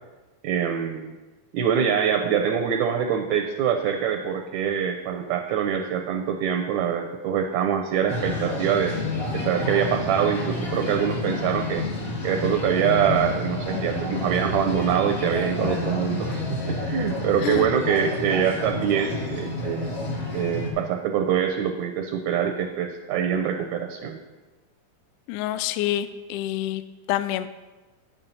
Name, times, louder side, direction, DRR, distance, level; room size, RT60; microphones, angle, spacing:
voice 1, 0.4-1.1 1.5-9.0 9.3-11.8 12.2-19.9 20.3-24.2, right 8 dB, 75° right, 5 dB, 1.8 m, -24 dB
sound 1, 8.1-20.7, left 2 dB, 30° left, 2.0 m, -29 dB
voice 2, 25.3-26.8 27.1-27.5, left 12 dB, 80° left, 12 dB, 2.0 m, -27 dB
10.0 x 7.3 x 5.4 m, 1.2 s
omnidirectional pair, 3.8 m